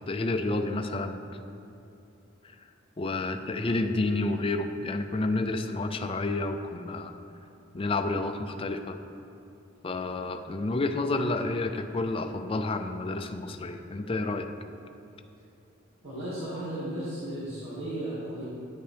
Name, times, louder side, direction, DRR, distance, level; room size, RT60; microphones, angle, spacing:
voice 1, 0.1-1.2 2.4-2.5 3.0-7.1 7.7-9.0 9.8-14.5, left 2 dB, 30° left, 7 dB, 0.4 m, -30 dB
voice 2, 16.0-18.4, right 1 dB, 80° right, -11 dB, 2.1 m, -35 dB
9.9 x 8.1 x 3.4 m, 2.8 s
head